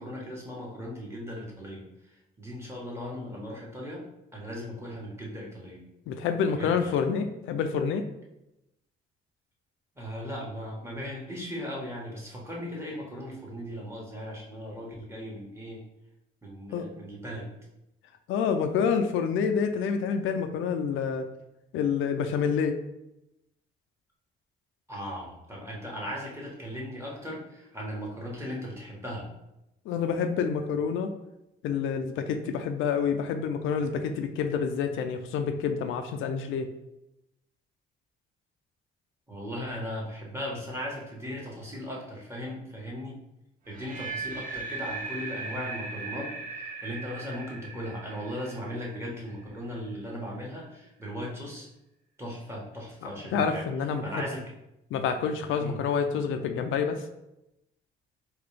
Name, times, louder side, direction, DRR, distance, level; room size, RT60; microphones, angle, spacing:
voice 1, 0.0-1.8 2.4-4.0 4.3-5.8 6.5-7.0 10.0-15.8 16.4-17.5 24.9-29.3 39.3-43.2 43.7-51.7 52.2-53.7 54.0-54.4 55.6-55.8, equal, 15° right, -4 dB, 1.2 m, -37 dB
voice 2, 6.1-8.1 16.7-16.9 18.3-21.3 21.7-22.8 29.9-31.1 31.6-36.7 53.0-54.0 54.9-57.1, left 6 dB, 85° left, 7 dB, 0.4 m, -28 dB
sound 1, 43.7-49.7, right 4 dB, 45° right, 0.7 m, -38 dB
3.9 x 2.4 x 3.3 m, 0.87 s
cardioid pair, 90°, 20 cm